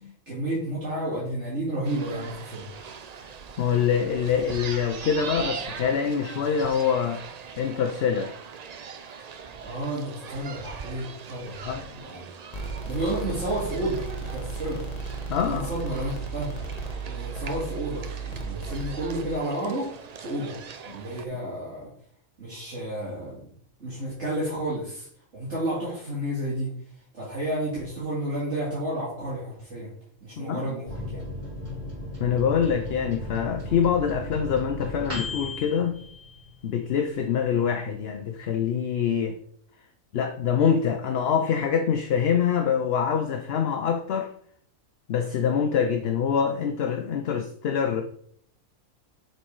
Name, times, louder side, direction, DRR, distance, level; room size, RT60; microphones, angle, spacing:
voice 1, 0.3-2.7 9.6-11.6 12.0-12.3 12.9-14.9 15.4-16.5 17.0-19.9 20.2-20.6 20.9-21.9 22.4-23.4 23.8-25.1 25.3-26.7 27.1-29.9 30.2-31.2, right 1 dB, 55° right, 2.6 m, -31 dB
sound 1, 1.8-21.2, right 6 dB, 85° right, 0.3 m, -41 dB
voice 2, 3.6-7.2 7.6-8.4 9.1-9.2 11.6-11.9 15.3-15.7 21.3-21.4 30.4-30.7 32.2-36.0 36.6-39.4 40.1-44.3 45.1-48.0, left 7 dB, 55° left, 0.7 m, -25 dB
sound 2, 12.5-19.4, right 4 dB, 30° left, 1.1 m, -35 dB
Microwave oven, 30.9-36.9 37.3-37.4 37.7-38.3, left 1 dB, 30° right, 3.4 m, -36 dB
7.1 x 4.4 x 4.6 m
omnidirectional pair, 1.4 m